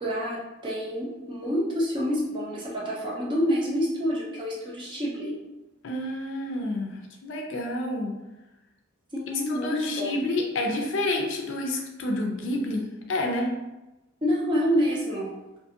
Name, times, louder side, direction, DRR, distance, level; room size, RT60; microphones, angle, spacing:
voice 1, 0.0-5.4 9.1-10.2 14.2-15.3, equal, 25° right, -5 dB, 0.6 m, -27 dB
voice 2, 5.8-8.2 9.5-13.5, left 1 dB, 70° left, 1 dB, 0.5 m, -29 dB
2.6 x 2.6 x 2.4 m, 1.0 s
head